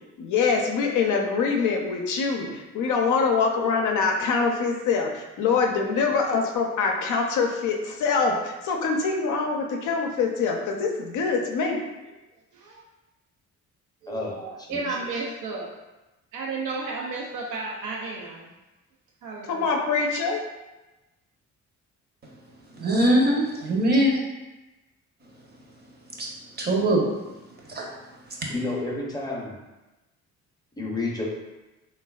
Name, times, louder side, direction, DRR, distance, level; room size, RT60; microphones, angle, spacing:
voice 1, 0.2-11.8 19.5-20.4, left 5 dB, 75° left, 1 dB, 0.5 m, -24 dB
voice 2, 5.9-6.2 11.7-11.8 12.5-12.8 14.0-15.7 16.3-18.5 19.2-19.9, right 3 dB, 90° right, -3 dB, 0.5 m, -34 dB
voice 3, 14.1-14.4 14.7-14.9 28.5-29.5 30.8-31.3, left 2 dB, 15° left, -3 dB, 0.6 m, -30 dB
voice 4, 22.7-24.2 26.2-26.3 26.6-27.0 27.7-27.8 28.4-28.5, right 1 dB, 35° right, -1 dB, 0.6 m, -21 dB
3.1 x 2.3 x 2.3 m, 1.1 s
cardioid pair, 90°, 30 cm